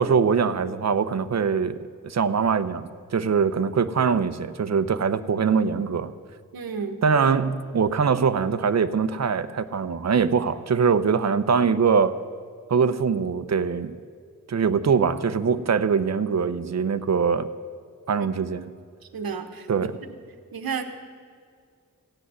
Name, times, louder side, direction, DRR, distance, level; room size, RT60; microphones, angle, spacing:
voice 1, 0.0-6.1 7.0-12.2 12.7-13.9 14.5-17.5 18.1-18.7 19.7-20.0, right 6 dB, 50° right, 13 dB, 0.7 m, -23 dB
voice 2, 6.5-7.0 18.2-18.3 19.1-19.9 20.5-20.8, right 6 dB, 90° right, 7 dB, 1.1 m, -32 dB
16.0 x 6.3 x 9.5 m, 2.1 s
cardioid pair, 60°, 34 cm